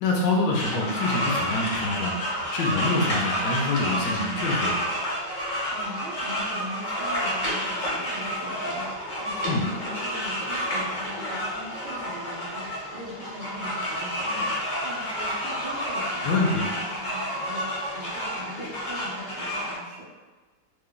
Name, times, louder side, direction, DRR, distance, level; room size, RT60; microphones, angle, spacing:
voice 1, 0.0-2.1 2.5-4.9 9.4-9.6 16.2-16.7, left 2 dB, 75° left, -1 dB, 1.2 m, -26 dB
sound 1, 0.5-19.7, equal, 50° left, 0.5 m, -30 dB
voice 2, 5.7-20.1, right 1 dB, 85° right, -4 dB, 0.4 m, -41 dB
3.2 x 2.2 x 3.7 m, 1.3 s
omnidirectional pair, 1.9 m